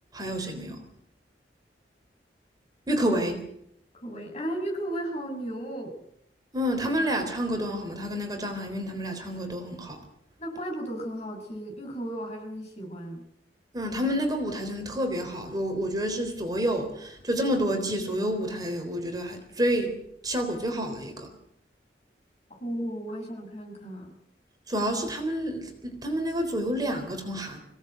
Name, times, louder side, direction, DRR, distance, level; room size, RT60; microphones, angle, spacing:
voice 1, 0.1-0.8 2.9-3.4 6.5-10.0 13.7-19.9 20.2-21.3 24.7-27.6, equal, 25° right, 4 dB, 3.8 m, -29 dB
voice 2, 4.0-6.0 10.4-13.2 22.5-24.1, right 1 dB, 40° left, 2 dB, 6.9 m, -35 dB
25.5 x 17.5 x 8.1 m, 0.74 s
head